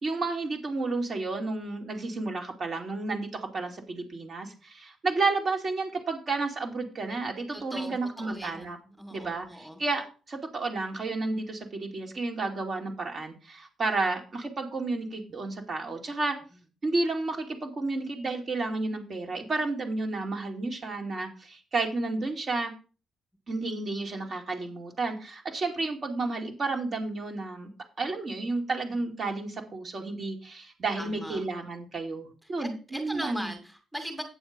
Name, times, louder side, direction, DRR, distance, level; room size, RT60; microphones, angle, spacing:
voice 1, 0.0-8.8 9.1-16.4 16.8-22.7 23.5-27.7 28.0-33.5, right 3 dB, 45° right, 2 dB, 2.7 m, -31 dB
voice 2, 7.5-9.8 28.9-29.0 31.0-31.4 32.4-34.2, equal, 5° right, 4 dB, 2.3 m, -39 dB
8.9 x 7.1 x 5.3 m, 0.35 s
cardioid pair, 90°, 0 cm